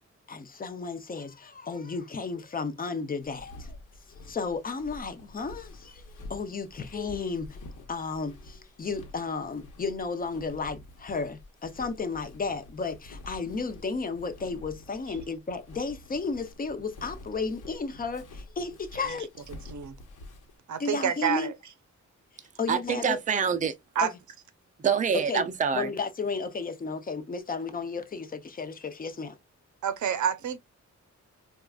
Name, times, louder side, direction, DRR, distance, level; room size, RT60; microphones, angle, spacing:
voice 1, 0.3-3.8 4.2-6.0 6.3-7.6 7.9-19.3 20.8-21.5 22.6-23.2 24.0-24.1 25.3-25.5 25.7-29.4, left 4 dB, 30° left, 0.5 m, -33 dB
Walk footsteps, 3.2-20.6, left 1 dB, 85° left, 1.1 m, -48 dB
voice 2, 20.7-21.5 24.0-24.1 29.8-30.6, right 8 dB, 70° right, 0.6 m, -28 dB
voice 3, 22.7-23.7 24.8-25.9, right 7 dB, 25° right, 0.4 m, -26 dB
4.6 x 2.4 x 2.2 m
wide cardioid pair, 180°, 30 cm